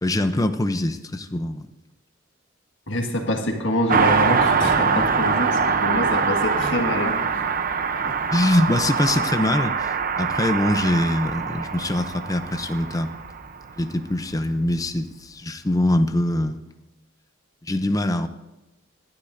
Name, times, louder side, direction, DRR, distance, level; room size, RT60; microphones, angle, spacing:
voice 1, 0.0-1.7 8.3-13.1 13.8-16.6 17.6-18.3, left 1 dB, 15° left, 8 dB, 0.6 m, -23 dB
voice 2, 2.9-7.2 8.0-8.2, left 1 dB, 65° left, 3 dB, 1.7 m, -25 dB
Car passing by, 3.9-13.9 14.1-14.2, right 5 dB, 45° right, 0.7 m, -23 dB
24.0 x 11.5 x 2.6 m, 1.0 s
head